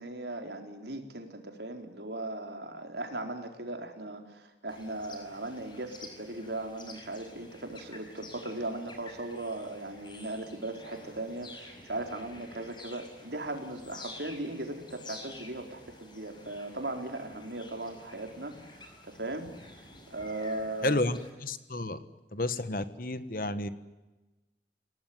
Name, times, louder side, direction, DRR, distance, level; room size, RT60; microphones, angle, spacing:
voice 1, 0.0-19.8 20.1-21.0, right 2 dB, 75° right, 4 dB, 4.3 m, -38 dB
sound 1, 4.7-21.3, left 2 dB, 25° left, 5.5 m, -50 dB
voice 2, 20.8-22.0 22.3-23.7, left 2 dB, 50° left, 12 dB, 1.5 m, -31 dB
29.5 x 18.5 x 9.5 m, 1.1 s
head